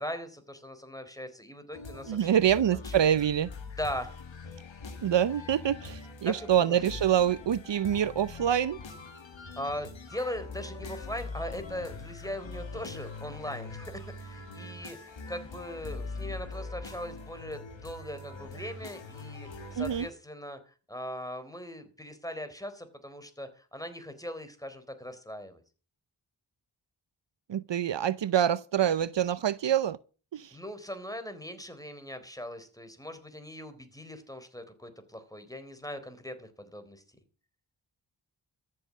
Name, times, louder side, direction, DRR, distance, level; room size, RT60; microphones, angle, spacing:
voice 1, 0.0-3.1 3.8-4.1 6.2-6.8 9.6-25.6 30.5-37.0, left 1 dB, 10° left, 3.7 m, -40 dB
sound 1, 1.7-20.1, left 3 dB, 75° left, 2.3 m, -43 dB
voice 2, 2.1-3.5 5.0-8.8 19.7-20.1 27.5-30.0 30.3-30.6, right 10 dB, 70° right, 0.7 m, -26 dB
14.0 x 7.7 x 8.3 m
cardioid pair, 50°, 45 cm